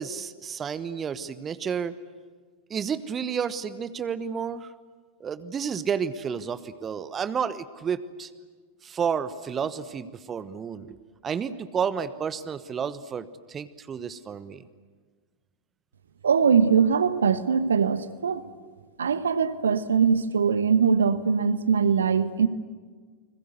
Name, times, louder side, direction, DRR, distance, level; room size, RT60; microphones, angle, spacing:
voice 1, 0.0-1.9 2.7-4.7 5.2-8.3 8.8-14.6, right 7 dB, 25° right, 14 dB, 1.1 m, -31 dB
voice 2, 16.2-18.4 19.0-22.5, right 6 dB, 70° right, 14 dB, 1.1 m, -22 dB
30.0 x 21.0 x 8.2 m, 1.5 s
figure-of-eight pair, 90°, 0 cm